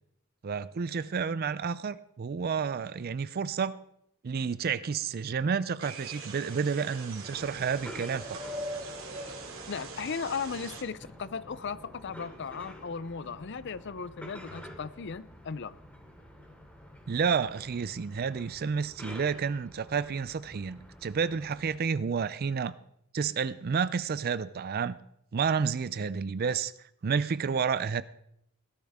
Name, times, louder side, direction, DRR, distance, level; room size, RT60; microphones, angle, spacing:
voice 1, 0.4-3.7 4.2-8.4 17.1-22.7 23.1-25.0 25.3-26.7 27.0-28.0, right 6 dB, 45° right, 0.4 m, -30 dB
sound 1, 5.8-10.8, right 2 dB, 75° right, 2.7 m, -41 dB
sound 2, 7.3-21.8, equal, 5° left, 2.7 m, -49 dB
voice 2, 9.7-15.7, left 5 dB, 60° left, 0.6 m, -36 dB
17.0 x 12.0 x 3.6 m
head